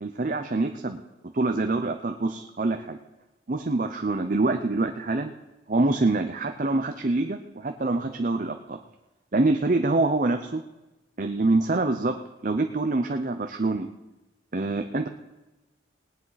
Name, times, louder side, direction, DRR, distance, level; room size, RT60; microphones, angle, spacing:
voice 1, 0.0-3.0 3.5-5.3 5.7-8.8 9.3-10.6 11.2-12.2 12.4-13.9 14.5-15.1, right 2 dB, 45° right, 6 dB, 0.6 m, -25 dB
19.0 x 9.9 x 4.0 m, 1.0 s
head